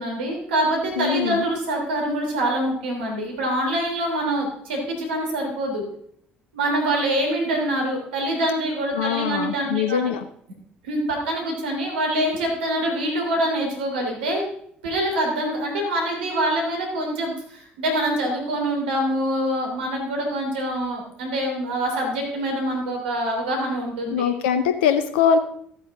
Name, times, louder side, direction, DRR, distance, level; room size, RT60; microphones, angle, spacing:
voice 1, 0.0-5.8 6.5-10.1 10.8-14.5 14.8-24.3, right 1 dB, 75° right, 1 dB, 3.2 m, -25 dB
voice 2, 1.0-1.4 9.0-10.2 24.1-25.4, left 7 dB, 70° left, 9 dB, 0.6 m, -22 dB
14.5 x 8.6 x 3.7 m, 0.65 s
figure-of-eight pair, 55°, 6 cm